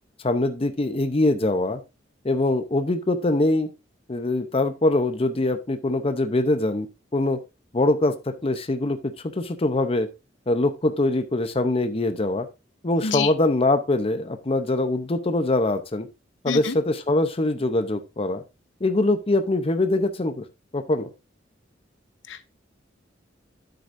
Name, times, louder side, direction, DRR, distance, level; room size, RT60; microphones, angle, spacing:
voice 1, 0.2-1.8 2.2-3.7 4.1-6.9 7.1-7.4 7.7-10.1 10.5-12.5 12.8-16.1 16.4-18.4 18.8-20.4 20.7-21.1, left 2 dB, 30° left, 0.7 m, -23 dB
voice 2, 16.5-16.8 22.3-22.4, left 5 dB, 75° left, 0.8 m, -27 dB
9.5 x 7.8 x 2.6 m
head